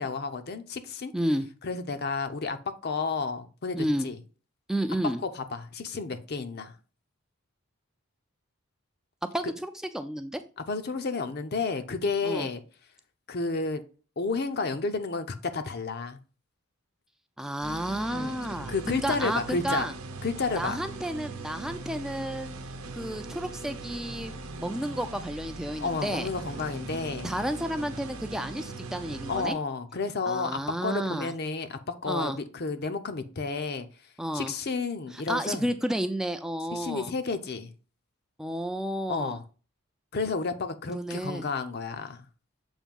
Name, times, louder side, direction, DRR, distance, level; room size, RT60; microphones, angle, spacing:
voice 1, 0.0-1.1 1.6-2.6 2.8-4.2 5.0-6.7 9.4-9.5 10.7-12.6 13.3-13.8 14.2-16.2 18.1-18.4 18.7-19.9 20.2-20.8 25.8-27.3 29.3-33.9 34.3-35.6 36.7-37.7 39.1-39.4 40.1-42.2, left 4 dB, 50° left, 0.6 m, -31 dB
voice 2, 1.1-1.5 3.7-4.1 4.7-5.2 9.3-10.4 12.3-12.5 17.4-19.9 20.6-22.6 22.9-24.3 24.6-26.3 27.2-29.6 30.3-31.3 32.1-32.4 34.2-34.5 35.1-37.1 38.4-39.4 40.9-41.4, equal, ahead, 0.4 m, -31 dB
sound 1, 17.6-29.5, right 3 dB, 80° right, 0.8 m, -40 dB
7.2 x 2.7 x 5.3 m
head